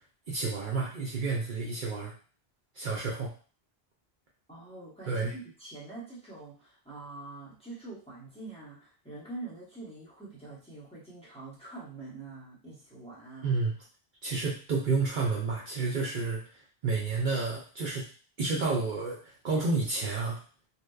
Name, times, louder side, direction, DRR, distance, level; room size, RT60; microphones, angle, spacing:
voice 1, 0.3-2.1 2.7-3.3 5.1-5.3 13.4-13.7 14.2-18.1 18.4-20.4, right 4 dB, 60° right, -3 dB, 0.6 m, -30 dB
voice 2, 4.5-13.6, right 3 dB, 5° left, -7 dB, 0.7 m, -45 dB
2.7 x 2.1 x 2.2 m, 0.40 s
omnidirectional pair, 1.0 m